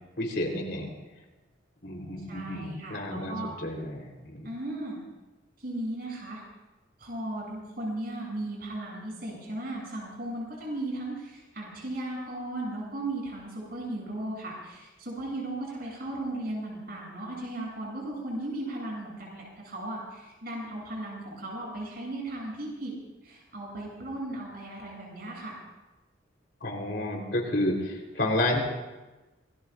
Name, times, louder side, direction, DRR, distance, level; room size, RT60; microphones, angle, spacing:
voice 1, 0.2-0.9 1.8-4.5 26.6-28.6, left 1 dB, 60° left, 0 dB, 3.7 m, -30 dB
voice 2, 2.3-3.5 4.4-5.0 5.6-6.4 7.0-22.9 23.2-25.6, right 1 dB, 50° right, -3 dB, 7.9 m, -36 dB
27.5 x 20.5 x 2.5 m, 1.1 s
head